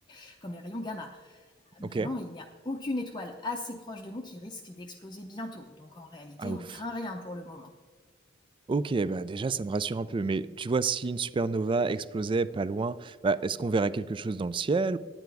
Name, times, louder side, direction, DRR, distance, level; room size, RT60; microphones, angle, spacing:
voice 1, 0.1-7.7, left 2 dB, 25° left, 2 dB, 0.6 m, -38 dB
voice 2, 8.7-15.0, right 4 dB, 25° right, 17 dB, 0.3 m, -29 dB
10.5 x 9.0 x 4.7 m, 1.5 s
head